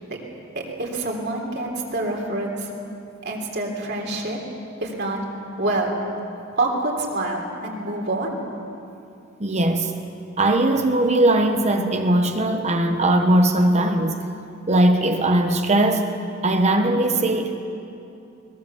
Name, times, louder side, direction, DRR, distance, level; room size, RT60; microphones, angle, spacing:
voice 1, 0.5-2.7 3.2-4.4 4.8-5.2 5.6-6.0 6.6-8.4, right 2 dB, 55° right, 0 dB, 3.5 m, -26 dB
voice 2, 9.4-9.9 10.4-14.2 14.7-16.1 16.4-17.5, right 1 dB, 35° right, 5 dB, 1.2 m, -19 dB
22.0 x 20.0 x 7.2 m, 2.7 s
head